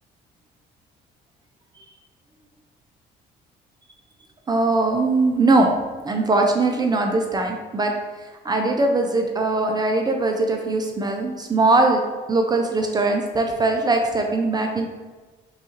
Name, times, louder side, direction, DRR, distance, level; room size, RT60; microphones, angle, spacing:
voice 1, 4.5-5.7 6.0-7.9 8.4-12.0 12.3-14.9, right 2 dB, 25° right, 3 dB, 0.4 m, -21 dB
5.4 x 2.4 x 2.9 m, 1.3 s
cardioid pair, 110°, 17 cm